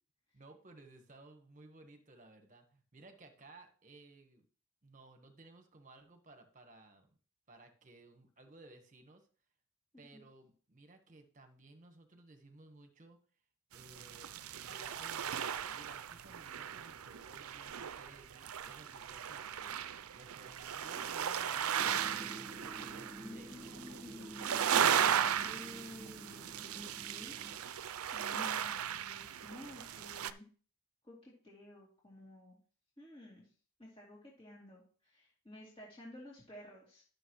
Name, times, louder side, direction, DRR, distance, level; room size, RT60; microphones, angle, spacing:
voice 1, 0.3-4.4 4.8-7.1 7.5-9.3 10.0-13.2 13.7-14.3 14.7-23.5, right 2 dB, 35° right, 6 dB, 1.4 m, -58 dB
sound 1, 13.7-30.3, right 8 dB, 75° right, 0.5 m, -36 dB
sound 2, 21.8-27.6, right 1 dB, 20° right, 1.5 m, -50 dB
voice 2, 23.2-24.7 25.0-27.7 28.1-30.4 31.0-32.6 33.0-33.5 33.8-37.0, left 1 dB, 25° left, -4 dB, 2.9 m, -53 dB
12.0 x 6.7 x 3.2 m, 0.41 s
head